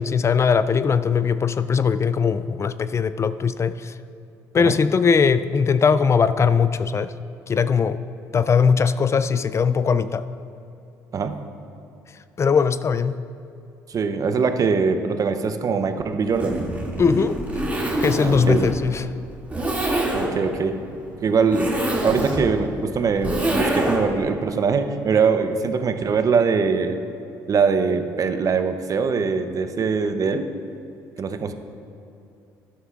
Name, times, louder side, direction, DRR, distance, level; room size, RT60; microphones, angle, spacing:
voice 1, 0.0-3.9 4.5-7.1 7.5-8.0 8.3-10.3 12.4-13.2 17.0-17.4 18.0-19.0, left 6 dB, 35° left, 13 dB, 0.4 m, -20 dB
voice 2, 13.9-16.7 18.2-18.7 20.1-20.9 21.2-21.8 22.0-27.0 27.5-30.5 31.2-31.5, right 5 dB, 45° right, 8 dB, 0.8 m, -22 dB
Zipper (clothing), 16.3-24.2, right 1 dB, 15° right, 2.4 m, -26 dB
12.5 x 11.0 x 2.5 m, 2.7 s
hypercardioid pair, 60°, 8 cm